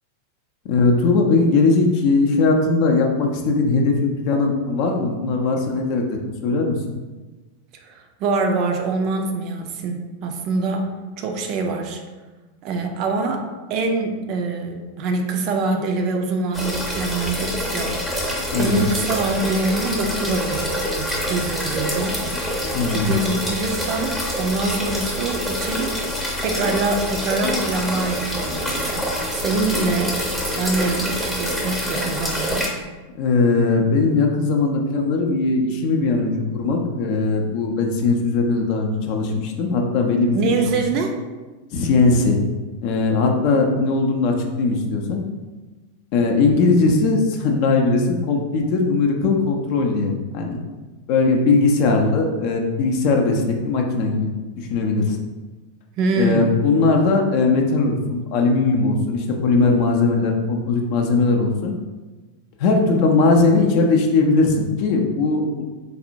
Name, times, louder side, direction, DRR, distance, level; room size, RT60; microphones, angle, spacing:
voice 1, 0.6-6.8 18.5-18.8 22.7-23.2 33.2-40.7 41.7-42.4 42.8-45.2 46.1-50.6 51.1-54.3 54.6-55.2 56.2-61.7 62.6-65.6, left 3 dB, 45° left, 2 dB, 0.5 m, -19 dB
voice 2, 7.8-10.9 11.2-12.0 12.6-22.1 22.9-26.0 26.4-30.1 30.6-32.6 40.3-41.1 56.0-56.5, right 3 dB, 40° right, 4 dB, 0.4 m, -24 dB
sound 1, 16.5-32.7, equal, 5° left, 0.6 m, -26 dB
4.1 x 2.1 x 2.6 m, 1.2 s
figure-of-eight pair, 90°, 0 cm